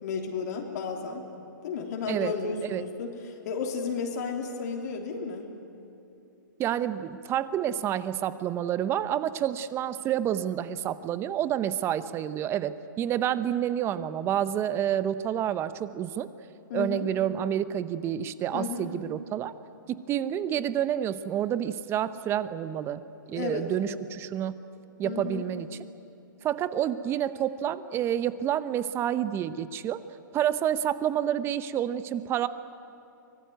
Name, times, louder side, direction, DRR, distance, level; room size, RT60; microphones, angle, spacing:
voice 1, 0.0-1.3 1.6-5.5 16.7-17.1 18.5-18.9 23.3-23.7 25.0-25.5, left 5 dB, 55° left, 1 dB, 3.3 m, -33 dB
voice 2, 6.6-16.3 16.7-19.5 19.9-24.5 25.0-25.8 26.4-30.0 30.3-32.5, right 10 dB, 20° right, 14 dB, 0.8 m, -29 dB
24.5 x 19.5 x 9.3 m, 2.9 s
hypercardioid pair, 135°, 11 cm